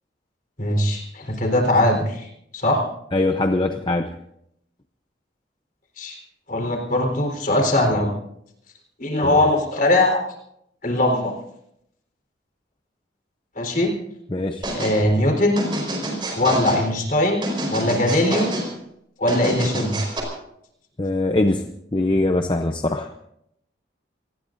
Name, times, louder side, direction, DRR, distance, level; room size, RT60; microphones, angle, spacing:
voice 1, 0.6-2.8 6.0-6.2 6.5-8.1 9.0-10.2 10.8-11.3 13.6-13.9 14.7-15.7 16.3-18.5 19.2-20.0, left 1 dB, 45° left, 3 dB, 4.2 m, -21 dB
voice 2, 3.1-4.2 9.2-9.4 14.3-14.7 21.0-23.1, left 2 dB, 25° left, 6 dB, 0.7 m, -22 dB
sound 1, 14.6-15.0 15.6-16.8 17.4-18.7 19.3-20.2, right 1 dB, 25° right, 4.8 m, -27 dB
27.5 x 19.5 x 2.7 m, 0.75 s
head